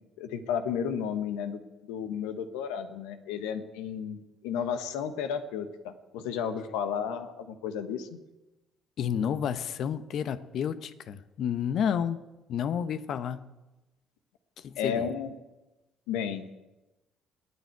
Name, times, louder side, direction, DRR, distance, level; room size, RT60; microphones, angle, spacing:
voice 1, 0.2-1.6 1.9-8.2 14.8-15.3 16.1-16.5, left 7 dB, 80° left, 9 dB, 1.3 m, -33 dB
voice 2, 9.0-12.2 12.5-13.5 14.6-15.1, left 8 dB, 60° left, 13 dB, 0.9 m, -30 dB
28.0 x 9.7 x 4.7 m, 1.1 s
hypercardioid pair, 55°, 0 cm